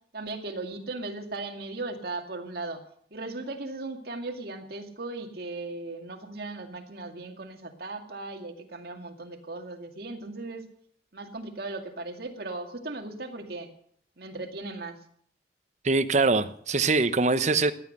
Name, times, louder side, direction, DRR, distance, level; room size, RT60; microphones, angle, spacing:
voice 1, 0.1-2.8 3.1-10.7 11.1-13.7 14.2-15.0, right 2 dB, 60° right, 4 dB, 2.3 m, -37 dB
voice 2, 15.8-17.7, right 3 dB, 40° right, 10 dB, 0.9 m, -23 dB
17.0 x 11.0 x 6.7 m, 0.62 s
head